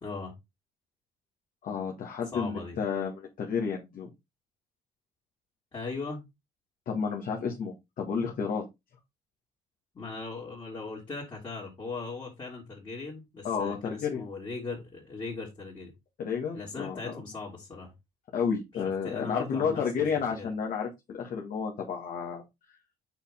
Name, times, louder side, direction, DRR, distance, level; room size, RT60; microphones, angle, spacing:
voice 1, 0.0-0.4 2.3-2.8 5.7-6.2 9.9-15.9 16.5-17.9 18.7-20.0 20.4-20.5, left 4 dB, 25° left, -5 dB, 2.8 m, -39 dB
voice 2, 1.6-4.1 6.9-8.6 13.4-14.2 16.2-17.1 18.3-22.4, left 6 dB, 55° left, 0 dB, 1.9 m, -31 dB
6.6 x 4.8 x 3.7 m, 0.21 s
cardioid pair, 110°, 17 cm